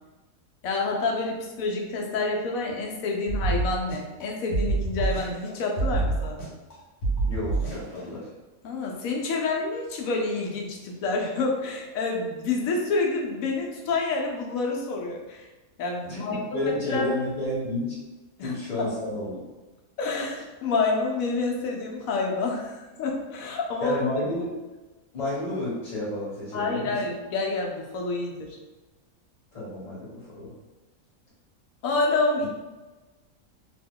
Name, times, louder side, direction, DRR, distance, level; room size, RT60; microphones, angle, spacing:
voice 1, 0.6-6.4 8.6-15.5 15.8-17.1 18.4-18.9 20.0-24.0 26.5-28.6 31.8-32.5, left 3 dB, 80° left, 0 dB, 1.1 m, -28 dB
sound 1, 3.3-4.2 4.5-5.5 5.8-6.7 7.0-8.0, right 3 dB, 55° left, 1.1 m, -26 dB
voice 2, 7.3-8.3 16.1-18.0 18.4-19.4 23.8-24.5 25.1-27.0 29.5-30.5, left 2 dB, 30° left, -7 dB, 1.2 m, -31 dB
2.9 x 2.2 x 3.5 m, 1.2 s
omnidirectional pair, 1.5 m